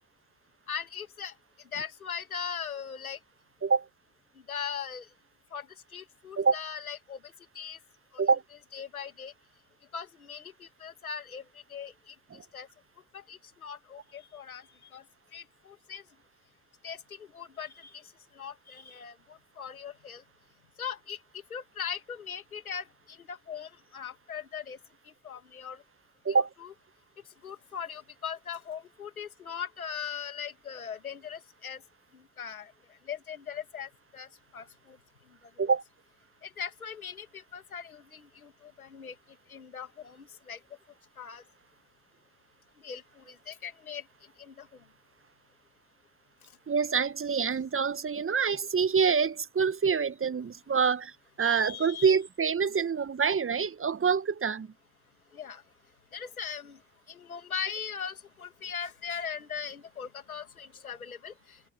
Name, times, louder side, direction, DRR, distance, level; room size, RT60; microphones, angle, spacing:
voice 1, 0.7-3.2 4.5-5.1 5.5-7.8 8.1-8.2 8.7-9.3 9.9-12.7 13.1-15.0 15.3-16.0 16.8-20.2 20.8-21.2 21.5-24.8 25.0-25.8 26.6-26.7 27.4-31.8 32.1-35.0 35.6-35.7 36.4-39.2 39.5-40.6 41.2-41.4 42.8-44.1 44.4-44.8 51.4-52.1 55.3-55.6 56.1-56.8 57.1-61.7, left 7 dB, 90° left, 2.6 m, -40 dB
voice 2, 46.7-54.7, right 5 dB, 30° right, 1.6 m, -26 dB
figure-of-eight pair, 45°, 41 cm